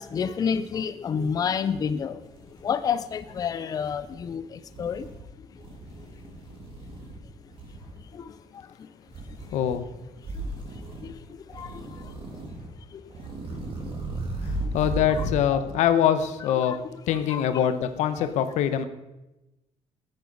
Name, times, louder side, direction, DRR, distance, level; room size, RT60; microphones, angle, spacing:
voice 1, 0.0-2.2 2.6-5.1 8.1-8.6 11.0-11.2 11.5-11.9 12.9-13.0 15.2-15.7 16.5-16.8 17.1-17.4 18.2-18.3, left 7 dB, 30° left, 13 dB, 0.5 m, -30 dB
sound 1, 2.2-3.4 3.8-4.2 4.7-5.2 5.6-7.2 7.5-8.0 9.1-9.8 10.2-11.1 11.5-12.7 13.1-15.4, right 2 dB, 50° right, 3.0 m, -36 dB
voice 2, 9.5-9.9 14.4-16.8 17.1-18.8, left 9 dB, 90° left, 11 dB, 1.0 m, -24 dB
14.0 x 9.5 x 5.3 m, 0.99 s
cardioid pair, 150°, 12 cm